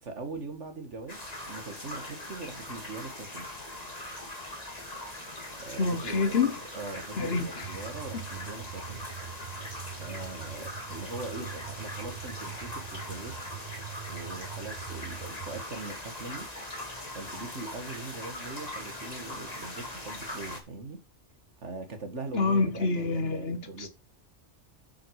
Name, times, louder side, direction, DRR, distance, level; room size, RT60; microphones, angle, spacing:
voice 1, 0.0-3.5 5.6-9.0 10.0-13.4 14.1-16.5 17.1-21.0 21.6-23.9, right 3 dB, 85° right, 2.2 m, -41 dB
sound 1, 1.1-20.6, left 1 dB, 35° left, 2.3 m, -41 dB
voice 2, 5.8-6.5 7.2-7.7 22.3-23.9, left 4 dB, 60° left, 1.4 m, -27 dB
sound 2, 7.6-15.6, right 11 dB, 50° right, 0.7 m, -43 dB
8.8 x 7.5 x 4.8 m
omnidirectional pair, 1.2 m